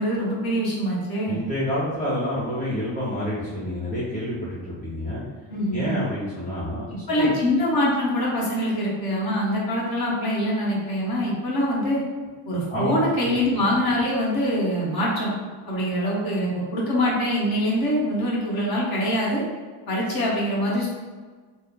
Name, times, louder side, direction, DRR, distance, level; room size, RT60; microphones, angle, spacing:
voice 1, 0.0-1.4 5.5-6.0 6.9-12.0 12.4-15.3 15.7-19.4 19.9-20.9, equal, 55° left, -4 dB, 1.3 m, -24 dB
voice 2, 1.3-5.2 5.7-6.8 7.2-7.3 12.7-13.4, left 1 dB, 15° left, -10 dB, 1.4 m, -28 dB
3.3 x 2.1 x 3.7 m, 1.4 s
cardioid pair, 75°, 45 cm